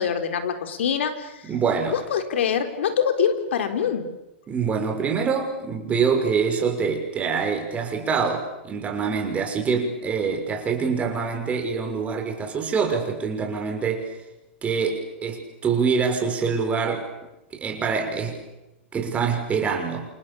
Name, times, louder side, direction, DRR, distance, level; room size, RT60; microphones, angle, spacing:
voice 1, 0.0-1.3 1.9-4.1, left 7 dB, 80° left, 8 dB, 4.0 m, -24 dB
voice 2, 1.5-2.0 4.5-14.1 14.6-17.1 17.5-18.4 18.9-20.1, right 5 dB, 20° right, 3 dB, 6.2 m, -25 dB
29.5 x 28.0 x 7.2 m, 0.94 s
hypercardioid pair, 130°, 6 cm